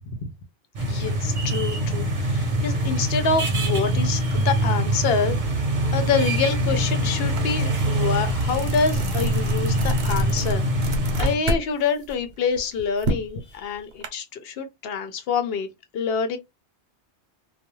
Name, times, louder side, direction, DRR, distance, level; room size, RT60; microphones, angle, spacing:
voice 1, 0.8-5.4 5.9-15.7 15.9-16.4, left 5 dB, 65° left, 0.8 m, -26 dB
sound 1, 0.8-11.4, right 1 dB, 50° right, 0.8 m, -24 dB
sound 2, 7.4-7.5 7.9-11.7 12.0-14.1, right 1 dB, 80° right, 1.0 m, -29 dB
2.3 x 2.1 x 3.0 m
omnidirectional pair, 1.1 m